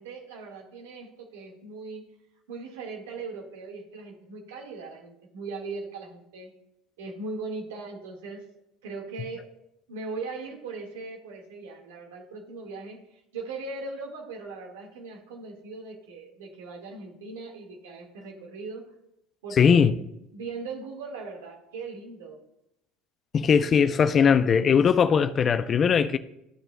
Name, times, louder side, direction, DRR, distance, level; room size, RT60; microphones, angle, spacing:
voice 1, 0.0-2.1 2.5-6.5 7.0-8.4 8.8-9.5 9.9-18.9 19.4-22.4, right 3 dB, 85° right, 1.8 m, -39 dB
voice 2, 19.6-19.9 23.3-26.2, left 6 dB, 40° left, 0.5 m, -20 dB
13.5 x 6.6 x 2.3 m
hypercardioid pair, 85°, 0 cm